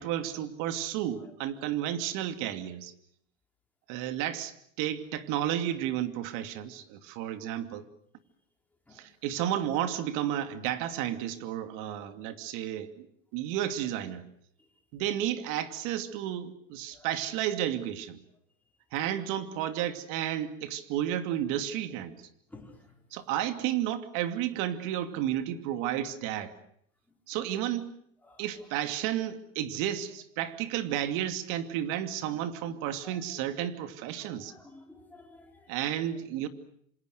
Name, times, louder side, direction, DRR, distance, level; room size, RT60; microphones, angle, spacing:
voice 1, 0.0-2.9 3.9-7.9 8.9-13.1 13.3-14.2 14.9-18.2 18.9-22.2 23.1-26.6 27.3-27.9 28.4-34.5 35.7-36.5, right 11 dB, 50° right, 10 dB, 2.6 m, -32 dB
voice 2, 22.5-22.9 28.3-28.4 33.0-33.2 34.2-35.7, left 2 dB, 5° left, 1 dB, 5.0 m, -53 dB
27.0 x 27.0 x 6.6 m, 0.68 s
supercardioid pair, 150°, 40 cm